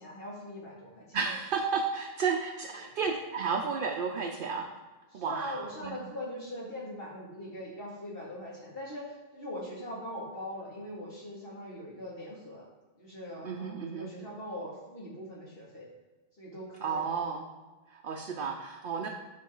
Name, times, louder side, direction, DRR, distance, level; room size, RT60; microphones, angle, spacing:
voice 1, 0.0-1.2 5.1-12.7 13.0-15.9 16.4-17.1 18.1-18.2, equal, 65° left, -6 dB, 2.7 m, -41 dB
voice 2, 1.1-4.7 5.1-6.0 13.4-14.1 16.8-17.4 17.9-19.1, right 5 dB, 60° right, 1 dB, 0.8 m, -32 dB
9.5 x 5.3 x 3.9 m, 1.2 s
omnidirectional pair, 1.1 m